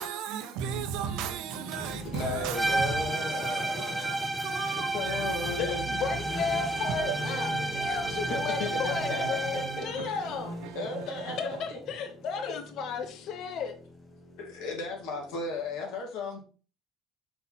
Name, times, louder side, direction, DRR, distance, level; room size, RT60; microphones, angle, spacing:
voice 1, 0.0-5.5 6.9-7.2, right 8 dB, 70° right, 0.9 m, -36 dB
sound 1, 1.4-15.7, left 2 dB, 25° left, 1.2 m, -42 dB
voice 2, 2.1-4.2 4.9-5.8 8.3-9.2 9.8-10.2 10.7-11.6 12.4-12.5 14.4-16.4, left 3 dB, 75° left, 2.4 m, -35 dB
sound 2, 2.5-9.9, right 2 dB, ahead, 0.6 m, -31 dB
sound 3, 4.9-11.6, right 9 dB, 90° right, 0.5 m, -42 dB
voice 3, 5.5-10.5 11.4-13.7, left 6 dB, 50° left, 0.8 m, -34 dB
5.7 x 4.1 x 4.3 m
cardioid pair, 155°, 0 cm